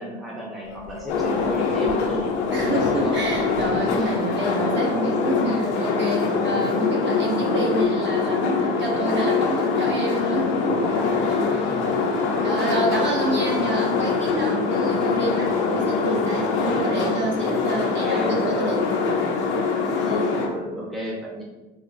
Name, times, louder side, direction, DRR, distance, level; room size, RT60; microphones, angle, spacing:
voice 1, 0.0-2.3 2.6-3.2 3.7-4.2 11.5-12.5 13.2-13.4 17.8-18.4 20.0-21.4, left 1 dB, ahead, -4 dB, 0.7 m, -33 dB
sound 1, 0.6-7.7 8.0-8.5 10.3-17.4, left 5 dB, 50° left, 0.5 m, -36 dB
sound 2, 1.1-20.5, left 4 dB, 90° left, 0.7 m, -23 dB
voice 2, 2.5-10.7 11.1-11.8 12.4-18.8, right 1 dB, 35° right, -1 dB, 0.8 m, -28 dB
3.9 x 2.4 x 2.4 m, 1.1 s
hypercardioid pair, 75°, 33 cm